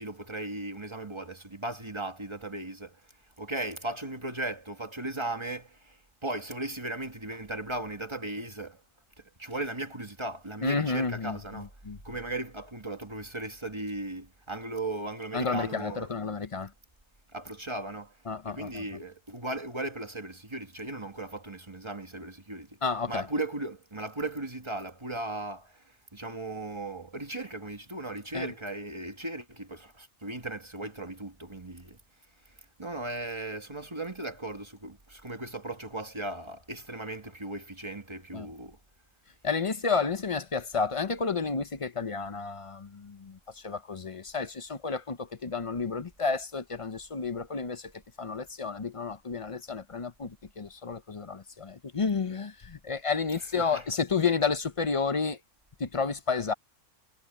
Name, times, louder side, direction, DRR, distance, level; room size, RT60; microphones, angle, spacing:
voice 1, 0.0-3.0 3.4-8.8 9.2-11.7 12.0-16.1 17.3-18.1 18.4-22.7 23.1-25.8 26.1-32.0 32.8-38.8 53.6-53.8, right 2 dB, 20° right, 1.6 m, -37 dB
voice 2, 10.6-12.0 15.3-16.7 18.3-18.8 22.8-23.2 28.3-28.5 38.3-38.5 39.4-47.9 48.2-55.4 55.8-56.5, left 4 dB, 35° left, 0.6 m, -31 dB
omnidirectional pair, 1.3 m